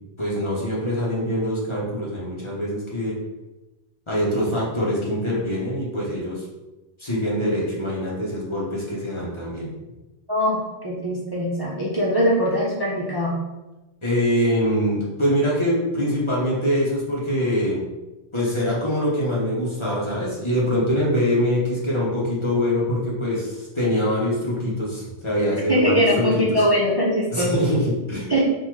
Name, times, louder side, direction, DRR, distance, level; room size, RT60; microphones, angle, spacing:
voice 1, 0.2-3.2 4.1-6.4 7.0-9.7 14.0-17.8 18.3-26.6 27.3-28.3, equal, 30° left, -6 dB, 1.1 m, -24 dB
voice 2, 10.3-13.3 25.7-27.5 28.3-28.4, equal, 25° right, -6 dB, 0.6 m, -21 dB
4.0 x 2.6 x 4.7 m, 1.1 s
omnidirectional pair, 1.1 m